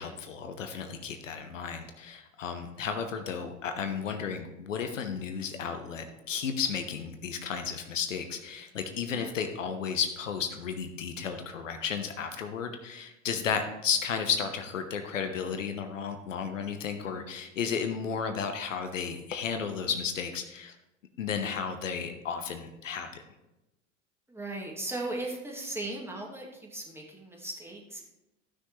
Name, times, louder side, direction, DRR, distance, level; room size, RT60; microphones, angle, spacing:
voice 1, 0.0-20.7 21.2-23.2, left 6 dB, 80° left, 7 dB, 1.1 m, -33 dB
voice 2, 24.3-28.0, right 2 dB, 5° right, -2 dB, 2.6 m, -37 dB
15.0 x 6.3 x 3.2 m, 0.94 s
figure-of-eight pair, 80°, 38 cm